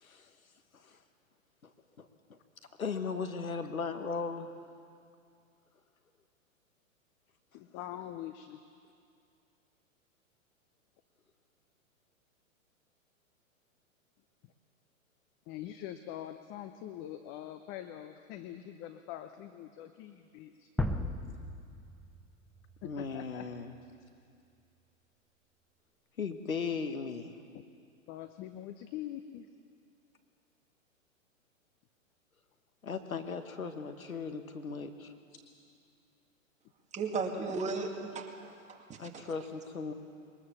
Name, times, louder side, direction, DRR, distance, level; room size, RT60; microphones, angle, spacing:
voice 1, 2.8-4.5 22.8-23.7 26.2-27.4 32.8-35.1 39.0-39.9, left 5 dB, 90° left, 7 dB, 1.7 m, -37 dB
voice 2, 7.5-8.6 15.5-20.7 22.8-23.5 23.8-24.1 27.5-27.6 28.1-29.5 32.9-33.0 35.3-35.4, left 12 dB, 30° left, 9 dB, 0.8 m, -44 dB
sound 1, 20.8-23.7, left 1 dB, ahead, 0.5 m, -37 dB
voice 3, 36.9-38.5 38.9-39.3, right 4 dB, 15° right, 1 dB, 2.2 m, -35 dB
22.0 x 20.0 x 7.2 m, 2.4 s
hypercardioid pair, 120°, 41 cm